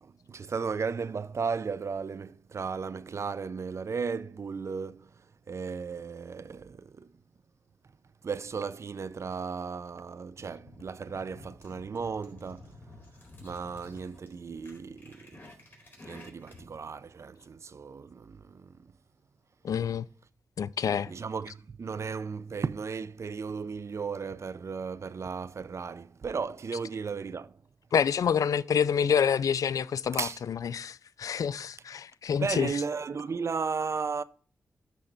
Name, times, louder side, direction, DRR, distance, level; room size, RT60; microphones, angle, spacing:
voice 1, 0.0-5.2 5.5-7.2 8.2-12.8 13.4-15.4 16.0-18.9 21.1-27.6 30.1-30.4 32.4-34.2, right 5 dB, 50° right, 0.5 m, -35 dB
sound 1, 10.4-16.8, left 2 dB, 35° left, 4.2 m, -51 dB
voice 2, 19.6-20.1 20.6-21.1 27.9-32.7, left 7 dB, 70° left, 0.4 m, -27 dB
12.0 x 4.4 x 3.9 m
cardioid pair, 55°, 6 cm